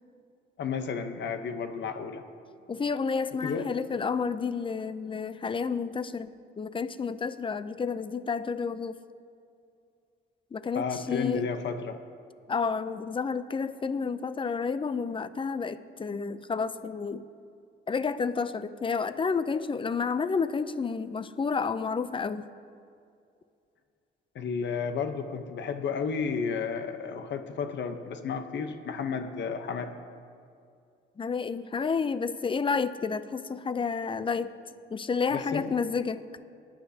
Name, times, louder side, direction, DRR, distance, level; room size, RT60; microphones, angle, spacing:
voice 1, 0.6-2.2 3.4-3.7 10.7-12.0 24.3-30.0 35.3-35.7, left 5 dB, 65° left, 8 dB, 1.0 m, -32 dB
voice 2, 2.7-6.3 6.6-9.0 10.5-11.5 12.5-17.2 17.9-22.4 31.2-34.5 34.9-36.2, left 5 dB, 25° left, 14 dB, 0.5 m, -30 dB
19.5 x 10.0 x 2.8 m, 2.4 s
cardioid pair, 90°, 20 cm